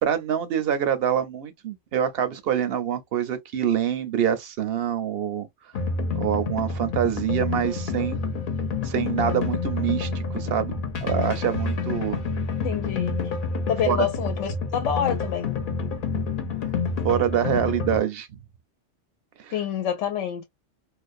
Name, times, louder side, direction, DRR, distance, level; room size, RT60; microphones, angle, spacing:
voice 1, 0.0-5.5 6.1-8.2 8.8-12.2 13.9-14.1 17.0-18.3 19.4-19.6, right 9 dB, 65° right, 0.8 m, -25 dB
sound 1, 5.7-18.0, left 4 dB, 50° left, 0.8 m, -28 dB
voice 2, 12.6-13.3 13.7-15.5 19.5-20.4, left 9 dB, 90° left, 0.9 m, -27 dB
2.5 x 2.1 x 2.4 m
omnidirectional pair, 1.2 m